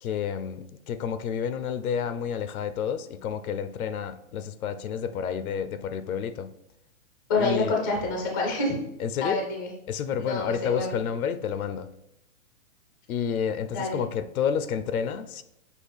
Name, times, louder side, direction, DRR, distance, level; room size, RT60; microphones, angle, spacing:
voice 1, 0.0-6.5 7.4-7.7 9.0-9.4 9.9-11.9 13.1-15.4, left 7 dB, 80° left, 11 dB, 0.6 m, -30 dB
voice 2, 7.3-8.8 9.2-9.7 10.2-11.0 13.7-14.0, left 3 dB, 15° left, -1 dB, 0.4 m, -27 dB
6.3 x 2.4 x 3.4 m, 0.80 s
hypercardioid pair, 155°, 42 cm